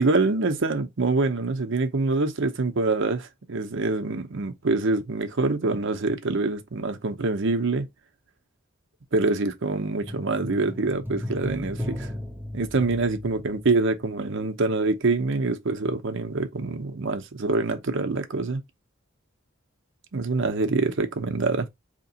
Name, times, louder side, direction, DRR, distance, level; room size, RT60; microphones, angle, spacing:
voice 1, 0.0-7.9 9.1-12.1 12.5-18.6 20.1-21.7, right 3 dB, 65° right, 0.7 m, -25 dB
sound 1, 10.1-14.5 14.8-14.9, left 1 dB, 10° right, 0.5 m, -36 dB
4.5 x 2.9 x 2.7 m
head